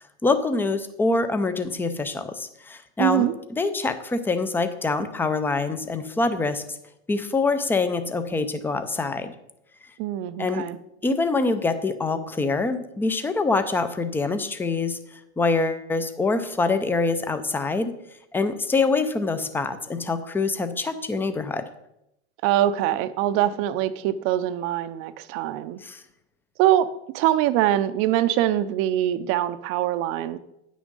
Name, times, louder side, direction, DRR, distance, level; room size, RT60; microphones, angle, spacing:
voice 1, 0.2-6.8 7.1-9.3 10.4-10.6 11.0-15.0 15.4-17.9 18.3-21.6 25.8-26.0, left 3 dB, 5° left, 11 dB, 0.5 m, -25 dB
voice 2, 3.0-3.3 10.0-10.8 22.4-25.8 26.6-26.9 27.1-30.4, right 13 dB, 40° right, 13 dB, 0.6 m, -23 dB
9.2 x 6.2 x 5.4 m, 0.83 s
hypercardioid pair, 120°, 34 cm